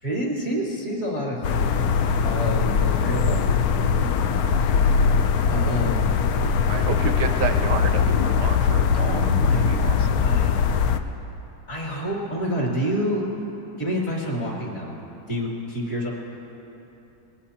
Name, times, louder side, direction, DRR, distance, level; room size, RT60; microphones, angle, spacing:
voice 1, 0.0-1.9 2.2-4.1 4.6-5.0 5.5-6.2 9.1-10.7 11.7-13.3 13.8-15.0 15.3-16.1, equal, 45° left, -4 dB, 3.0 m, -29 dB
sound 1, 1.4-11.0, left 6 dB, 70° left, 0.9 m, -21 dB
voice 2, 6.7-10.1, right 7 dB, 75° right, 8 dB, 1.1 m, -31 dB
21.0 x 19.5 x 2.9 m, 3.0 s
omnidirectional pair, 2.1 m